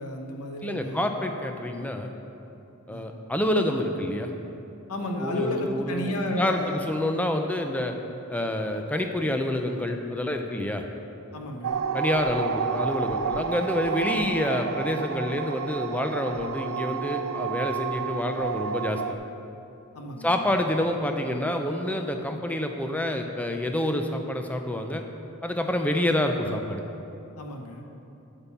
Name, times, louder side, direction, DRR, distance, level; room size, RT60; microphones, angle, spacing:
voice 1, 0.0-1.1 2.9-3.1 4.9-6.9 11.3-11.8 19.9-20.5 27.4-27.8, left 1 dB, 75° left, 3 dB, 1.0 m, -32 dB
voice 2, 0.6-2.1 2.9-4.3 5.2-8.0 8.3-10.8 11.9-19.0 20.2-25.0 25.4-26.8, left 1 dB, 5° left, 4 dB, 0.5 m, -27 dB
sound 1, 11.6-19.1, right 6 dB, 60° right, 0.4 m, -30 dB
8.6 x 5.3 x 7.1 m, 2.8 s
head